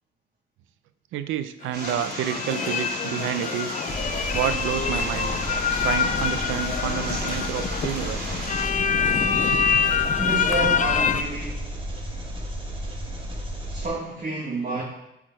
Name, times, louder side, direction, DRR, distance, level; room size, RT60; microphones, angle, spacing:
voice 1, 1.1-3.8 4.3-5.3 5.8-8.4 9.5-9.6, right 10 dB, 90° right, 12 dB, 0.6 m, -29 dB
sound 1, 1.6-11.2, left 7 dB, 40° left, 0.5 m, -25 dB
sound 2, 1.7-8.7, right 2 dB, 60° right, 2.8 m, -35 dB
Engine, 3.9-13.9, equal, 25° right, 1.7 m, -33 dB
voice 2, 10.2-11.7 13.7-14.8, right 3 dB, 40° right, -4 dB, 1.6 m, -30 dB
8.6 x 4.9 x 4.5 m, 0.89 s
cardioid pair, 90°, 20 cm